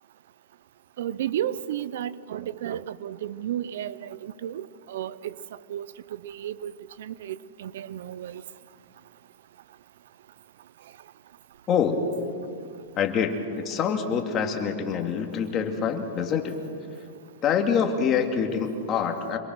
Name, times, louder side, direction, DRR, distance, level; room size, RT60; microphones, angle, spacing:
voice 1, 1.0-5.3 5.7-5.9 6.2-6.7 7.0-8.4, right 11 dB, 75° right, 0.7 m, -33 dB
voice 2, 11.7-12.0 13.0-16.6 17.4-19.4, left 7 dB, 30° left, 2.4 m, -25 dB
26.5 x 22.5 x 6.3 m
hypercardioid pair, 135°, 0 cm